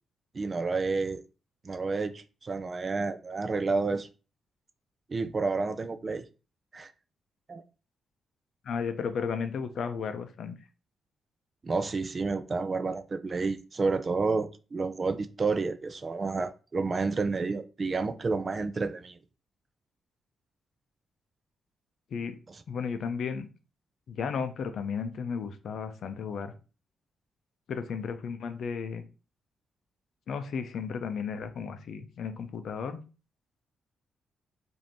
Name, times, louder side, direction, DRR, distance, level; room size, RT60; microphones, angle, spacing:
voice 1, 0.3-1.2 1.6-4.1 5.1-6.2 6.7-6.9 7.5-7.6 11.6-19.2, right 4 dB, 30° right, 0.3 m, -30 dB
voice 2, 8.6-10.6 22.1-22.4 22.7-23.5 24.1-26.5 27.7-29.0 30.3-33.0, left 6 dB, 60° left, 0.6 m, -34 dB
5.1 x 2.7 x 3.0 m
wide cardioid pair, 145°, 0 cm